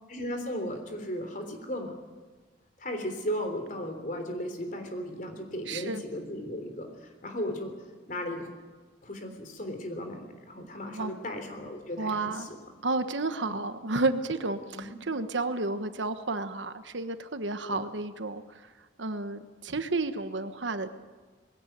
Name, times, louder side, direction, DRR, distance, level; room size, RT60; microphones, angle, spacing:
voice 1, 0.1-1.9 2.8-7.7 8.1-8.5 9.0-12.6 13.5-13.6 14.7-15.0 17.7-17.8, equal, 45° left, 5 dB, 3.5 m, -36 dB
voice 2, 5.7-6.0 10.9-11.1 12.0-12.5 12.8-18.7 19.0-20.9, right 3 dB, 80° right, 9 dB, 1.3 m, -31 dB
20.5 x 17.0 x 9.3 m, 1.4 s
head